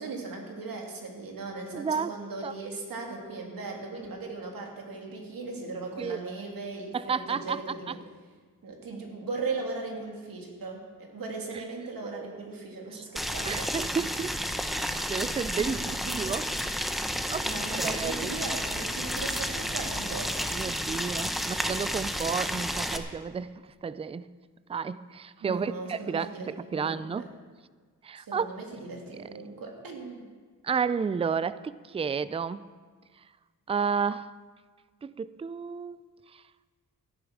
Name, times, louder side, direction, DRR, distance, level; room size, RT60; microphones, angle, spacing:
voice 1, 0.0-8.0 8.6-13.7 15.6-16.2 17.4-20.5 25.4-27.2 28.2-30.3, right 3 dB, 85° right, 2.6 m, -38 dB
voice 2, 1.7-2.1 2.4-2.5 6.0-6.2 6.9-7.6 12.1-12.3 13.0-13.1 13.4-14.4 14.8-16.4 17.3-17.5 17.8-18.3 20.5-23.5 23.8-24.3 24.7-27.3 28.0-28.5 29.1-29.3 30.6-32.6 33.7-34.3 35.0-36.0, right 6 dB, 20° right, 0.3 m, -31 dB
Boiling, 13.2-23.0, equal, ahead, 0.8 m, -31 dB
14.0 x 10.5 x 6.2 m
wide cardioid pair, 130°, 33 cm